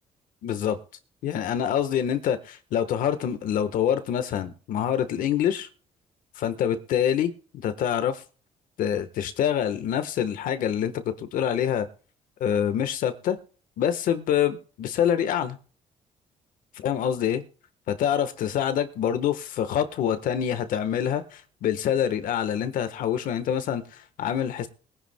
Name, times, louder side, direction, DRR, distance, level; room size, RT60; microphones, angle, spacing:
voice 1, 0.4-0.8 1.2-5.7 6.4-8.2 8.8-11.9 12.4-13.4 13.8-15.6 16.8-17.5 17.9-24.7, left 9 dB, 85° left, 10 dB, 1.3 m, -26 dB
22.0 x 10.0 x 2.2 m, 0.39 s
cardioid pair, 155°, 14 cm